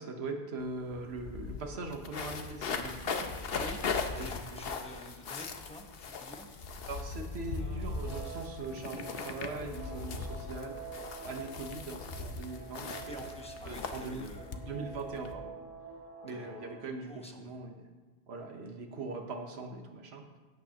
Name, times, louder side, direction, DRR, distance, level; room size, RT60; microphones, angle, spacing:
voice 1, 0.0-3.0 3.4-3.5 4.2-4.6 6.9-10.8 11.2-13.2 13.6-14.3 14.5-15.5 16.2-17.9 18.3-20.2, right 3 dB, 85° right, 3 dB, 1.3 m, -41 dB
sound 1, 0.6-0.7 0.9-15.3, left 4 dB, 70° left, 1.0 m, -39 dB
voice 2, 3.5-6.5 13.1-14.6 16.3-16.5 17.1-17.5, left 1 dB, 5° left, 2 dB, 1.1 m, -48 dB
Guitar, 7.3-16.7, right 3 dB, 15° right, 2.2 m, -47 dB
17.0 x 8.5 x 2.9 m, 1.3 s
omnidirectional pair, 1.1 m